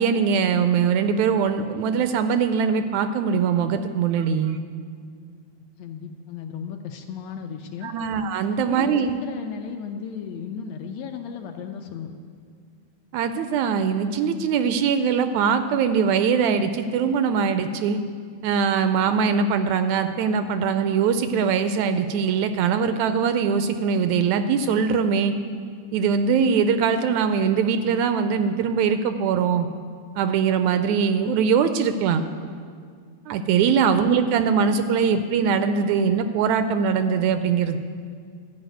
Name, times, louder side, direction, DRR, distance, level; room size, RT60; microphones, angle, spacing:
voice 1, 0.0-4.6 7.8-9.2 13.1-18.0 18.4-25.3 25.9-29.7 30.2-32.2 33.3-37.8, right 6 dB, 80° right, 9 dB, 1.7 m, -22 dB
voice 2, 5.8-7.9 8.4-12.1 33.6-33.8, left 7 dB, 75° left, 5 dB, 1.7 m, -35 dB
13.0 x 5.3 x 9.0 m, 2.1 s
omnidirectional pair, 3.4 m